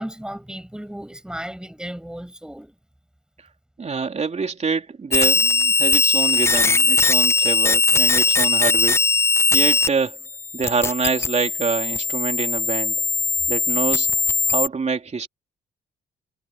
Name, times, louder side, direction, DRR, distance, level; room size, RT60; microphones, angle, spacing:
voice 1, 0.0-2.7 8.2-8.3, equal, 5° right, 5.6 m, -35 dB
voice 2, 3.8-9.0 9.5-10.2 10.5-13.0 13.5-14.1 14.5-15.3, right 5 dB, 35° right, 3.3 m, -26 dB
sound 1, 5.1-9.9 10.2-14.7, left 3 dB, 15° left, 0.3 m, -20 dB
cardioid pair, 90°, 20 cm